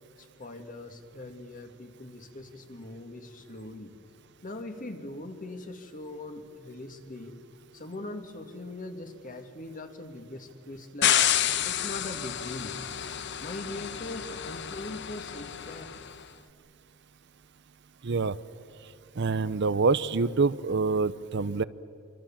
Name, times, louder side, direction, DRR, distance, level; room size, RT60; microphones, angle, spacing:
voice 1, 0.2-3.9 4.4-7.4 7.7-11.3 11.6-12.8 13.4-16.0, left 2 dB, 45° left, 6 dB, 2.2 m, -41 dB
sound 1, 11.0-16.1, left 10 dB, 60° left, 0.9 m, -29 dB
voice 2, 18.0-18.4 19.2-21.6, right 4 dB, 60° right, 16 dB, 0.7 m, -26 dB
26.0 x 25.5 x 7.4 m, 2.5 s
head